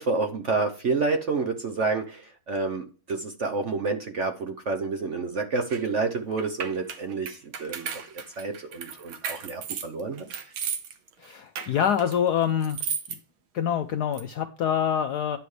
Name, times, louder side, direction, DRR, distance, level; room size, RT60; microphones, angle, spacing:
voice 1, 0.0-8.1 8.4-10.2, right 4 dB, 55° right, 6 dB, 0.9 m, -29 dB
sound 1, 5.7-5.8 6.4-10.9 11.2-13.2 14.1-14.2, right 7 dB, 90° right, 1.9 m, -34 dB
voice 2, 11.2-12.8 13.1-13.2 13.5-15.4, left 8 dB, 70° left, 8 dB, 1.0 m, -26 dB
10.0 x 6.8 x 3.2 m, 0.37 s
omnidirectional pair, 2.2 m